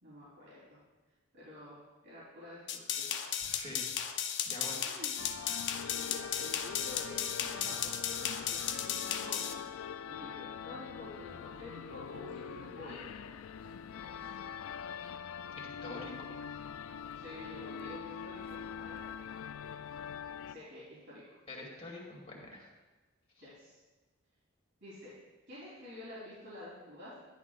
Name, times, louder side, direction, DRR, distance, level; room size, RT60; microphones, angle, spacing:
voice 1, 0.0-0.8 1.3-3.1 4.8-5.2 5.9-9.6 10.1-13.2 17.1-19.0 20.5-21.4 23.4-23.8 24.8-25.1 25.5-27.1, left 1 dB, 65° right, -9 dB, 3.8 m, -49 dB
sound 1, 2.7-9.5, left 8 dB, 60° left, 0.7 m, -35 dB
voice 2, 3.4-3.8 4.4-4.9 15.6-16.1 21.5-22.7 23.3-23.5, left 2 dB, 30° left, -2 dB, 2.6 m, -45 dB
sound 2, 5.2-20.5, left 7 dB, 90° left, 0.4 m, -43 dB
13.0 x 11.5 x 2.5 m, 1.2 s
head